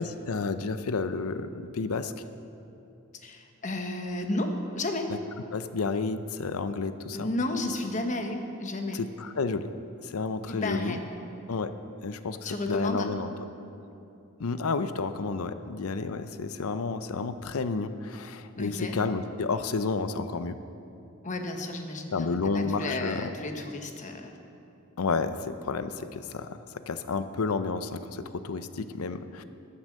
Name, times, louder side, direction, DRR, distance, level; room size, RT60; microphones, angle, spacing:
voice 1, 0.0-2.1 5.1-5.2 5.5-7.3 8.9-9.7 10.0-11.0 11.5-11.7 12.0-13.3 14.4-20.6 22.1-23.3 25.0-26.6 26.9-29.4, left 4 dB, 85° left, 11 dB, 0.6 m, -31 dB
voice 2, 3.2-5.1 7.1-9.0 10.5-11.0 12.4-13.1 18.6-19.0 21.2-24.3, left 2 dB, 35° left, 5 dB, 1.0 m, -32 dB
14.5 x 7.9 x 6.5 m, 2.8 s
head